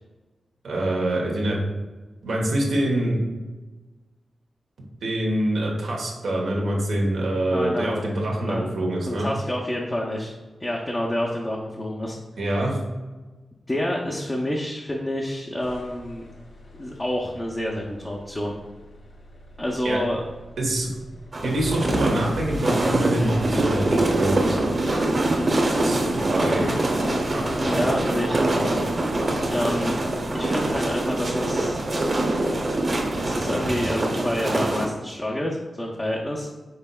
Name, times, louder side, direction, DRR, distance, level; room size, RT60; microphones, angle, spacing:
voice 1, 0.6-1.6 2.2-3.2 5.0-9.3 12.4-12.8 19.8-20.0 20.6-20.9 21.4-24.4 25.8-26.8 27.3-27.4, right 1 dB, 90° right, -2 dB, 1.0 m, -25 dB
voice 2, 7.5-8.0 8.4-8.7 9.1-10.3 10.6-12.2 13.7-16.2 16.7-18.5 19.6-20.2 26.2-26.7 27.6-30.0 30.3-31.8 32.8-36.5, left 1 dB, 20° left, -2 dB, 0.6 m, -28 dB
sound 1, 15.6-33.9, equal, 80° left, 1.0 m, -43 dB
sound 2, 21.3-34.8, right 2 dB, 45° right, 0.9 m, -24 dB
5.4 x 4.0 x 2.3 m, 1.2 s
cardioid pair, 75°, 0 cm